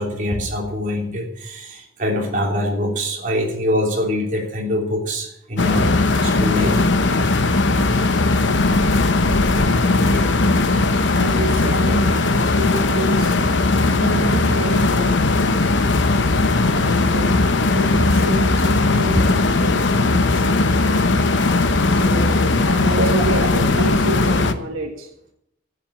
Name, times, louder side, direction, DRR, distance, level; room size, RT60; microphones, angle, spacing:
voice 1, 0.0-6.9 7.7-7.8 10.1-10.3 19.1-19.3 23.0-23.1, left 1 dB, 40° right, -1 dB, 3.4 m, -24 dB
sound 1, 5.6-24.5, left 3 dB, 60° left, 0.9 m, -18 dB
voice 2, 9.5-13.4 13.9-15.4 16.5-17.3 17.6-25.1, right 1 dB, 80° right, 3 dB, 1.6 m, -30 dB
12.0 x 8.4 x 7.5 m, 0.74 s
head